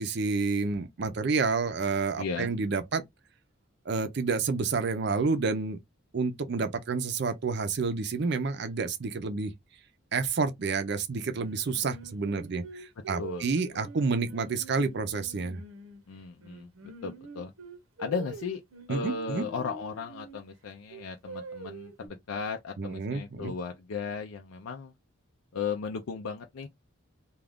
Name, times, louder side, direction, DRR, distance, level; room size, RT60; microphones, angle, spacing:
voice 1, 0.0-3.0 3.9-5.8 6.1-9.5 10.1-15.6 18.9-19.5 22.8-23.5, right 4 dB, 55° right, 0.5 m, -29 dB
voice 2, 2.2-2.5 13.2-13.5 13.7-13.9 16.1-16.7 17.0-17.5 18.0-18.6 18.9-24.9 25.5-26.7, left 5 dB, 85° left, 0.4 m, -35 dB
Singing, 11.3-16.0 16.4-20.4 20.9-22.1, right 3 dB, 85° right, 0.8 m, -45 dB
2.4 x 2.3 x 3.4 m
head